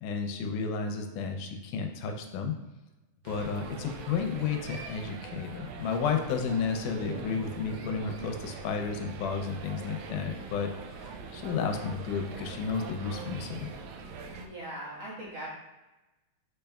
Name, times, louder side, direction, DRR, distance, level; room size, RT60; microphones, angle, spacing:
voice 1, 0.0-2.5 3.3-10.7 11.0-13.7, left 5 dB, 85° left, 4 dB, 2.1 m, -32 dB
sound 1, 3.3-14.5, right 4 dB, 80° right, 1.7 m, -43 dB
sound 2, 6.9-10.3, equal, 55° left, 1.9 m, -47 dB
voice 2, 14.3-15.5, right 1 dB, 60° right, -8 dB, 2.5 m, -40 dB
5.2 x 4.4 x 2.3 m, 1.1 s
omnidirectional pair, 3.6 m